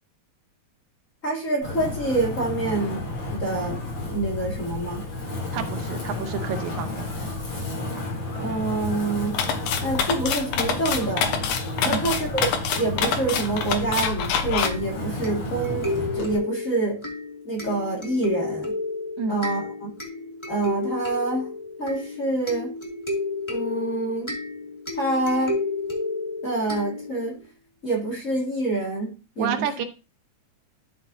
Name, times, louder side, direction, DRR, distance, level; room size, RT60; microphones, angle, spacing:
voice 1, 1.2-3.1 3.3-5.1 8.4-9.4 9.8-11.4 11.8-17.0 17.4-18.7 19.3-19.9 20.5-21.5 21.8-22.7 23.5-24.3 25.0-25.6 26.4-27.4 27.8-29.6, right 2 dB, 30° left, -3 dB, 2.2 m, -27 dB
Wind, 1.6-16.4, left 2 dB, 60° left, 4.4 m, -32 dB
voice 2, 5.5-7.1 11.8-12.1 19.2-19.4 29.4-29.9, right 6 dB, 80° right, 8 dB, 2.2 m, -29 dB
sound 1, 9.3-14.7, left 7 dB, 85° left, 2.5 m, -26 dB
sound 2, 14.6-27.4, left 2 dB, 10° left, 1.5 m, -32 dB
12.0 x 6.0 x 2.7 m, 0.32 s
omnidirectional pair, 3.4 m